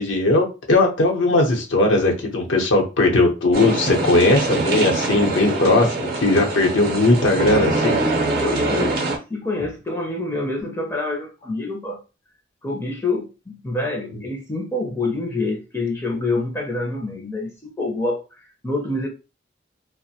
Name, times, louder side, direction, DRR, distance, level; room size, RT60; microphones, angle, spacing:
voice 1, 0.0-8.0, left 2 dB, 80° left, 0.8 m, -18 dB
sound 1, 3.5-9.2, right 2 dB, 55° right, 0.6 m, -23 dB
voice 2, 8.4-9.0 9.3-12.0 12.6-18.2 18.6-19.1, left 2 dB, 15° left, 0.4 m, -26 dB
2.5 x 2.1 x 2.7 m
head